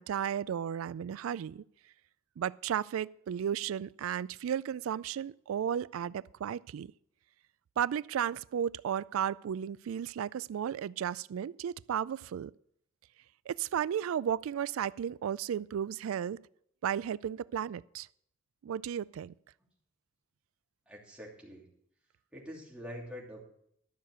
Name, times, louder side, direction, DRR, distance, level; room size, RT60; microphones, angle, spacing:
voice 1, 0.0-1.6 2.4-6.9 7.8-12.5 13.5-16.4 16.8-18.1 18.6-19.3, right 9 dB, 85° right, 0.3 m, -34 dB
voice 2, 20.9-21.7 22.3-23.4, equal, 5° right, 2.9 m, -45 dB
12.5 x 6.6 x 6.8 m
head